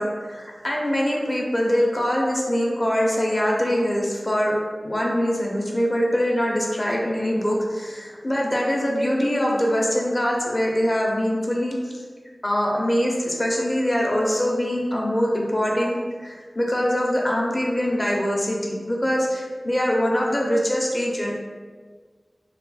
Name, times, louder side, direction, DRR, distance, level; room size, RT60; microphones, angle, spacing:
voice 1, 0.0-4.6 4.8-11.7 12.4-21.4, equal, 35° left, -2 dB, 0.8 m, -23 dB
3.2 x 2.3 x 4.1 m, 1.5 s
wide cardioid pair, 55°, 0 cm